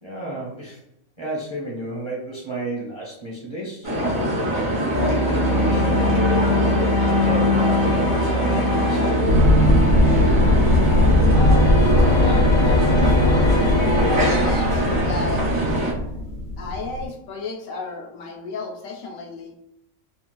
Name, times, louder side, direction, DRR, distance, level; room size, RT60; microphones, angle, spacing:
voice 1, 0.0-0.8 1.2-9.4, right 2 dB, 30° right, -4 dB, 0.5 m, -33 dB
sound 1, 3.8-15.9, right 1 dB, 80° right, 1.5 m, -24 dB
sound 2, 4.9-14.4, left 2 dB, 65° left, 0.8 m, -23 dB
sound 3, 9.3-17.1, left 1 dB, 60° right, 0.8 m, -19 dB
voice 2, 11.3-13.5 14.0-15.4 15.9-19.6, left 3 dB, 85° left, 2 dB, 1.0 m, -33 dB
3.7 x 2.3 x 2.4 m, 0.76 s
omnidirectional pair, 1.4 m